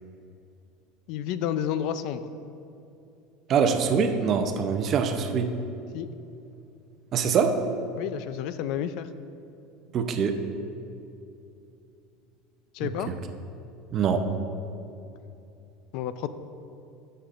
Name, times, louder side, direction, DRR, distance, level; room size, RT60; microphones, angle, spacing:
voice 1, 1.1-2.3 5.9-6.1 8.0-9.1 12.7-13.1 15.9-16.3, left 10 dB, 55° left, 12 dB, 0.4 m, -30 dB
voice 2, 3.5-5.5 7.1-7.7 9.9-10.4 13.1-13.2 13.9-14.3, right 6 dB, 35° right, 6 dB, 0.6 m, -24 dB
15.0 x 6.7 x 2.5 m, 2.7 s
supercardioid pair, 160°, 0 cm